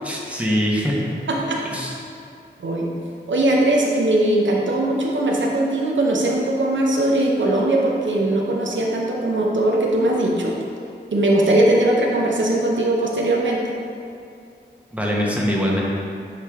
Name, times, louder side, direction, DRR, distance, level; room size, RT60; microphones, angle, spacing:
voice 1, 0.0-1.2 1.6-1.9 14.9-15.8, equal, 5° right, -3 dB, 1.1 m, -23 dB
voice 2, 1.3-1.6 2.6-2.9 3.3-10.5 11.1-13.6, right 1 dB, 90° right, -2 dB, 0.7 m, -20 dB
8.0 x 3.3 x 3.6 m, 2.4 s
wide cardioid pair, 45°, 19 cm